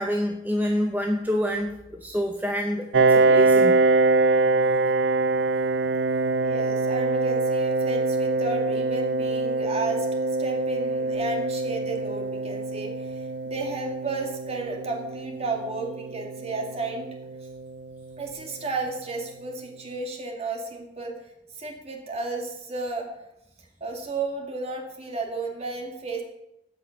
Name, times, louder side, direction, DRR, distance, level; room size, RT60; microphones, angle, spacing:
voice 1, 0.0-3.7, equal, 10° right, 1 dB, 0.8 m, -27 dB
Piano, 2.9-18.3, right 3 dB, 70° right, 0.5 m, -24 dB
voice 2, 6.4-17.1 18.2-21.2 21.5-23.1 23.8-26.2, right 3 dB, 35° right, 1 dB, 2.0 m, -33 dB
15.0 x 5.6 x 5.8 m, 0.89 s
head